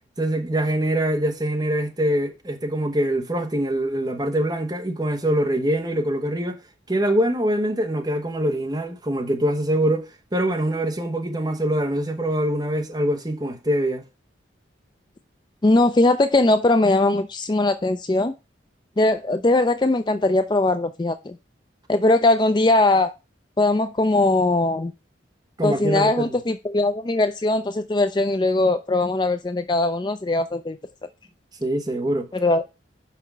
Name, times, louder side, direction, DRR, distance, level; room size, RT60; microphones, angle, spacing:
voice 1, 0.2-6.6 6.9-14.0 25.6-26.3 31.6-32.3, right 1 dB, 20° right, 1.2 m, -24 dB
voice 2, 15.6-18.3 19.0-21.3 21.9-23.1 23.6-24.9 25.6-30.8 32.3-32.6, left 2 dB, 25° left, 0.4 m, -20 dB
5.8 x 5.6 x 6.1 m
head